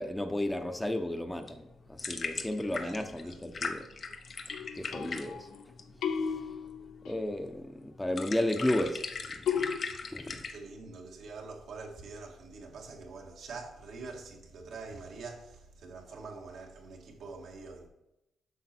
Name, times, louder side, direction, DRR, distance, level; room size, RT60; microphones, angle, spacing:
voice 1, 0.0-3.9 4.8-5.5 7.1-9.0 10.1-10.4, left 1 dB, 10° left, 0.9 m, -33 dB
sound 1, 1.3-10.6, left 4 dB, 50° left, 0.9 m, -40 dB
voice 2, 2.7-3.4 10.5-17.9, right 4 dB, 75° right, 1.8 m, -45 dB
sound 2, 4.5-5.6 6.0-7.2 9.5-9.8, left 7 dB, 80° left, 0.7 m, -34 dB
8.2 x 5.7 x 4.5 m
cardioid pair, 80°, 0 cm